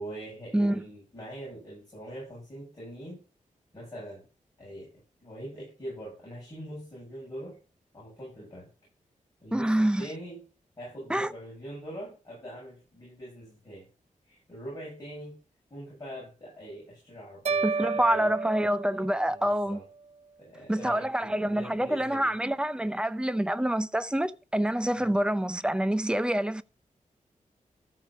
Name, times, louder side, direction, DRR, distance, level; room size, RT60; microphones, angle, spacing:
voice 1, 0.0-3.2 3.7-4.2 4.6-4.9 5.2-7.6 7.9-8.7 9.4-10.4 10.8-13.9 14.2-15.4 15.7-18.3 19.3-19.8 20.4-22.4 24.9-25.1, right 1 dB, 25° left, 6.8 m, -42 dB
voice 2, 0.5-0.8 9.5-10.0 11.1-11.3 17.6-19.8 20.7-26.6, right 1 dB, 5° right, 0.6 m, -27 dB
sound 1, 17.5-19.7, right 4 dB, 55° right, 0.5 m, -32 dB
14.0 x 5.0 x 5.9 m
wide cardioid pair, 140°, 14 cm